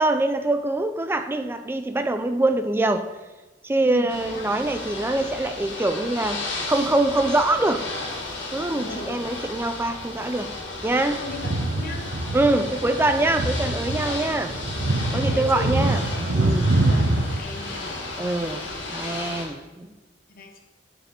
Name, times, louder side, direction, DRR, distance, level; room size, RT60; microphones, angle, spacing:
voice 1, 0.0-3.1 3.6-7.9 8.5-10.5 10.8-11.2 12.3-14.6 15.1-16.1 16.3-16.7 18.2-19.9, right 2 dB, 10° right, 8 dB, 0.4 m, -24 dB
voice 2, 3.8-4.5 8.7-9.5 11.0-12.1 14.3-14.4 15.3-15.7 16.7-17.9 20.3-20.6, left 2 dB, 55° left, 3 dB, 1.0 m, -37 dB
Ocean / Boat Water vehicle, 4.1-19.5, left 2 dB, 80° left, 1.5 m, -34 dB
sound 1, 11.3-17.4, right 2 dB, 80° right, 0.8 m, -25 dB
9.2 x 5.0 x 3.7 m, 1.2 s
head